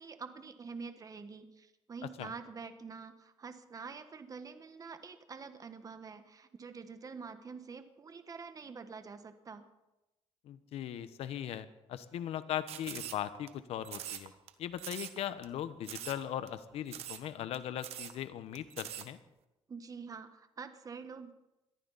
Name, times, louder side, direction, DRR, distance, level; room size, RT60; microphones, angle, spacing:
voice 1, 0.0-9.7 19.7-21.3, right 5 dB, 35° right, 9 dB, 1.4 m, -46 dB
voice 2, 10.4-14.3 14.6-19.2, left 10 dB, 75° left, 13 dB, 1.1 m, -39 dB
sound 1, 12.7-13.5 13.8-14.5 14.8-15.2 15.4-15.5 15.8-16.2 16.5-16.6 16.9-17.3 17.5-17.6 17.8-18.1 18.5-19.1, right 11 dB, 80° right, 1.3 m, -43 dB
21.5 x 14.0 x 4.2 m, 0.97 s
cardioid pair, 100°, 10 cm